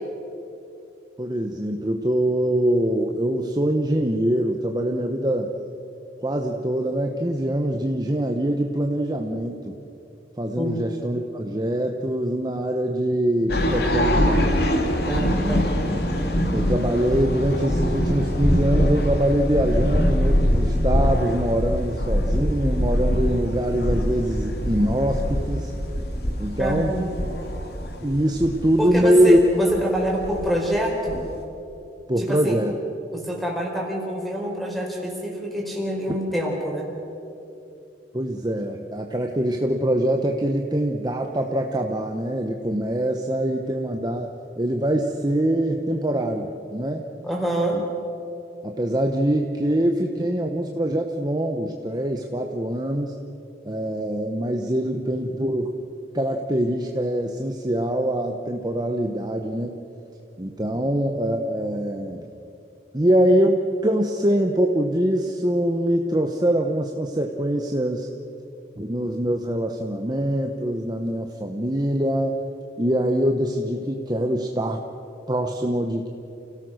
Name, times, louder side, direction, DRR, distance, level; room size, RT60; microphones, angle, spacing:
voice 1, 1.2-5.5 6.2-9.8 10.4-14.7 15.4-15.6 16.5-25.7 26.4-26.9 28.0-29.4 32.1-32.7 38.1-44.3 44.6-47.1 47.7-47.8 48.6-53.2 53.6-55.7 56.1-59.8 60.4-62.3 62.9-68.1 68.8-72.4 72.8-74.8 75.3-76.1, right 1 dB, 25° right, 3 dB, 1.0 m, -23 dB
sound 1, 13.5-31.4, equal, 60° left, 2.8 m, -23 dB
voice 2, 15.1-15.7 26.6-27.1 28.8-31.2 32.2-32.6 33.1-36.8 47.2-47.8 60.7-60.9, equal, ahead, -1 dB, 4.5 m, -26 dB
29.5 x 17.0 x 6.5 m, 2.8 s
head